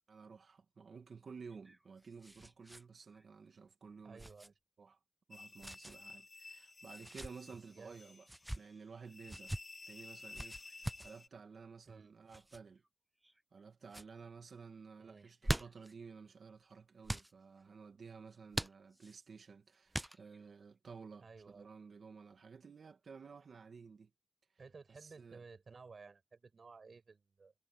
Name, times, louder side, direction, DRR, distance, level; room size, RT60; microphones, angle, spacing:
voice 1, 0.1-4.3 4.8-5.0 5.3-8.3 8.6-9.5 9.8-12.8 13.5-24.1 24.9-25.4, right 5 dB, 85° right, 2.2 m, -54 dB
sound 1, 1.5-2.8 3.1-3.3 4.2-4.5 5.6-6.0 6.9-7.3 8.2-8.6 9.3-9.6 10.3-11.1 12.3-12.6 13.2-13.6 13.9-14.1 15.2-15.9 17.0-17.3 18.5-19.2 19.9-20.5, right 1 dB, 10° right, 0.4 m, -42 dB
voice 2, 4.0-4.5 7.5-8.2 11.9-12.1 15.0-15.3 21.2-21.7 24.6-27.5, right 4 dB, 65° right, 7.4 m, -56 dB
sound 2, 5.3-11.3, left 3 dB, 50° left, 2.5 m, -54 dB
wide cardioid pair, 65°, 0 cm